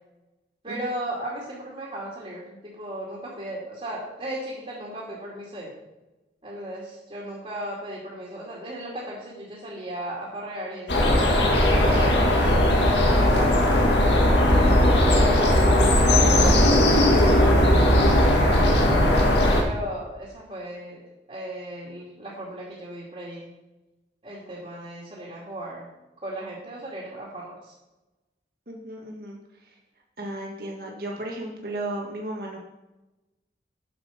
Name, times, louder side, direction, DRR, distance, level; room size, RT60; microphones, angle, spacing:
voice 1, 0.6-5.7 6.4-11.1 11.7-14.2 15.0-18.8 19.6-21.0 21.3-23.5 24.2-25.9 26.2-27.7, right 1 dB, 35° right, -6 dB, 2.3 m, -36 dB
sound 1, 10.9-19.6, left 1 dB, 80° left, 1.8 m, -18 dB
voice 2, 15.0-15.8 28.7-29.4 30.2-32.6, right 1 dB, 55° right, -1 dB, 1.7 m, -35 dB
7.8 x 6.7 x 5.8 m, 1.0 s
head